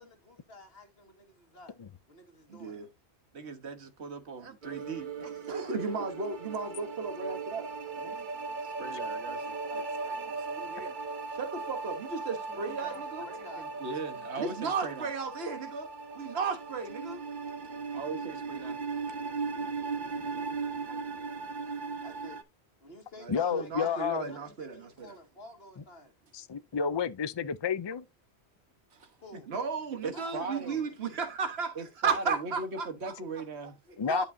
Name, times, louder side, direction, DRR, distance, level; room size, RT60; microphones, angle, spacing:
voice 1, 0.0-1.8 2.1-2.8 12.5-13.0 13.2-13.7 19.4-19.6 21.6-22.4 22.8-26.1 29.2-29.5 30.1-30.9 32.2-32.4 34.1-34.3, left 2 dB, 65° left, 2.2 m, -51 dB
voice 2, 2.5-2.9 5.5-7.7 8.0-8.2 11.3-13.3 14.4-15.9 16.1-17.2 23.2-25.1 29.5-33.1 34.1-34.3, right 5 dB, 70° right, 1.5 m, -34 dB
voice 3, 3.3-6.1 8.1-11.0 12.5-13.0 13.6-15.1 17.4-17.6 17.9-18.8 20.5-20.6 20.9-21.8 28.9-29.4 29.9-30.8 31.8-33.8, right 4 dB, 85° right, 1.6 m, -41 dB
sound 1, 4.6-22.4, right 4 dB, 50° right, 1.0 m, -38 dB
voice 4, 23.3-24.3 26.3-28.1 34.0-34.2, left 6 dB, 45° left, 0.3 m, -30 dB
11.0 x 5.4 x 2.7 m
omnidirectional pair, 1.1 m